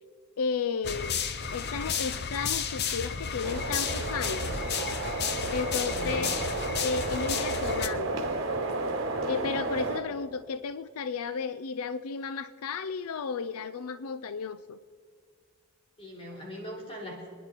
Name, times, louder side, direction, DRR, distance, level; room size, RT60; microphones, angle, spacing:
voice 1, 0.4-1.2 1.5-4.5 5.5-6.3 6.8-8.3 9.2-14.8, left 5 dB, 80° left, 14 dB, 0.5 m, -33 dB
sound 1, 0.8-7.9, left 7 dB, 45° left, 0.7 m, -32 dB
sound 2, 3.4-10.0, right 2 dB, 55° right, 2.1 m, -32 dB
voice 2, 5.7-6.4 16.0-17.3, equal, 25° left, -2 dB, 3.8 m, -41 dB
27.5 x 10.5 x 4.5 m, 2.1 s
head